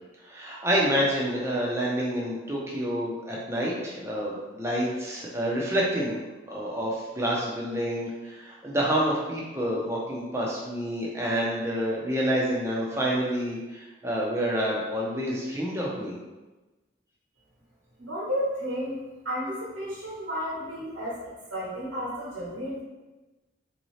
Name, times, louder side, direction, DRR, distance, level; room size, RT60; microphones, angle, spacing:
voice 1, 0.2-6.2 6.5-16.2, equal, 15° right, -4 dB, 0.6 m, -28 dB
voice 2, 18.0-19.0 19.2-21.2 21.5-22.8, equal, 80° right, -9 dB, 1.2 m, -32 dB
3.6 x 2.8 x 3.1 m, 1.2 s
head